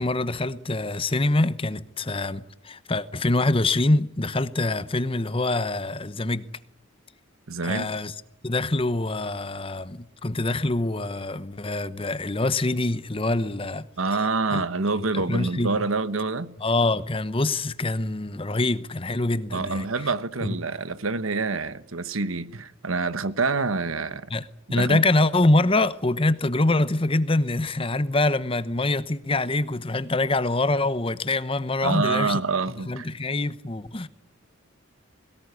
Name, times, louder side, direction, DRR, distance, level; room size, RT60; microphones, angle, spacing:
voice 1, 0.0-6.5 7.6-8.1 8.4-13.9 14.5-14.6 15.0-15.7 16.6-19.9 20.4-20.5 24.3-24.4 24.7-32.4 32.9-34.1, left 2 dB, 25° left, 0.9 m, -25 dB
voice 2, 7.5-7.9 14.0-16.5 19.5-24.3 24.7-25.0 31.8-33.1, right 3 dB, 85° right, 1.2 m, -27 dB
21.5 x 18.5 x 9.7 m
head